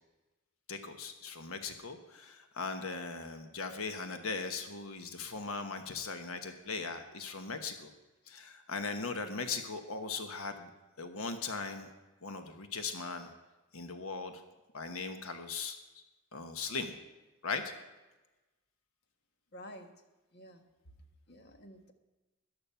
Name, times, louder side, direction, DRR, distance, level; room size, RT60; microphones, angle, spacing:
voice 1, 0.7-7.9 8.3-10.7 11.0-11.9 12.2-13.3 13.7-14.4 14.7-16.0 16.3-17.0 17.4-17.7, left 4 dB, 70° left, 7 dB, 1.2 m, -39 dB
voice 2, 19.5-19.9 20.3-20.6 21.3-21.9, equal, 50° left, 6 dB, 1.4 m, -50 dB
14.0 x 11.0 x 5.7 m, 1.1 s
head